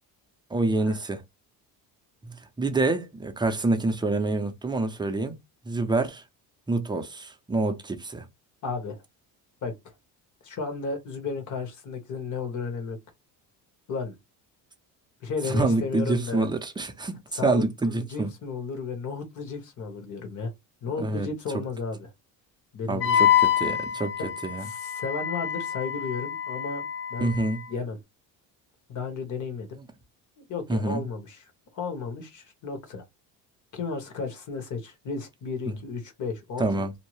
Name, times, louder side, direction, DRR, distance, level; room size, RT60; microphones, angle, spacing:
voice 1, 0.5-1.2 2.2-5.4 5.7-6.2 6.7-8.2 15.4-18.3 21.0-21.3 22.9-24.7 27.2-27.6 30.7-31.0 35.7-35.8 36.6-36.9, right 2 dB, 10° right, 0.5 m, -27 dB
voice 2, 8.6-9.0 9.6-9.7 10.4-13.0 13.9-14.1 15.2-16.5 17.3-20.5 20.8-22.1 22.7-23.2 24.6-26.8 27.1-27.3 27.7-28.0 28.9-29.8 30.4-33.0 33.7-36.7, left 4 dB, 45° left, 1.2 m, -33 dB
Wind instrument woodwind instrument, 23.0-27.6, left 10 dB, 65° left, 1.2 m, -26 dB
2.7 x 2.1 x 3.0 m
cardioid pair, 120°, 40 cm